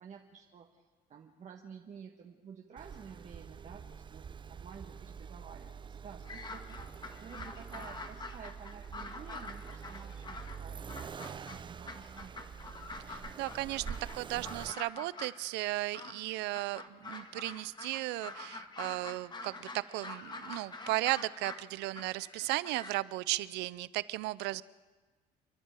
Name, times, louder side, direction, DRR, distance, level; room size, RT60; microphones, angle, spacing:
voice 1, 0.0-12.5, right 7 dB, 45° right, 1 dB, 1.5 m, -52 dB
Accelerating revving vroom, 2.8-14.7, right 6 dB, 30° right, 0.5 m, -46 dB
sound 1, 6.3-10.6 10.9-23.0, left 3 dB, 25° left, 1.7 m, -46 dB
voice 2, 13.1-24.6, right 19 dB, 90° right, 19 dB, 0.5 m, -35 dB
27.5 x 11.0 x 9.2 m, 1.3 s
cardioid pair, 110°, 17 cm